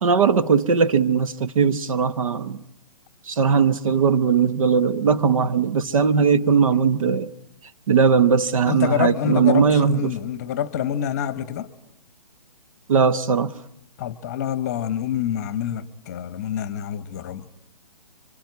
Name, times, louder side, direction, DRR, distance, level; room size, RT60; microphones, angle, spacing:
voice 1, 0.0-2.6 3.3-7.3 7.9-10.1 12.9-13.5, right 6 dB, 55° right, 1.3 m, -19 dB
voice 2, 8.7-11.7 14.0-17.4, left 9 dB, 25° left, 1.1 m, -26 dB
25.5 x 25.0 x 9.5 m
hypercardioid pair, 165°, 21 cm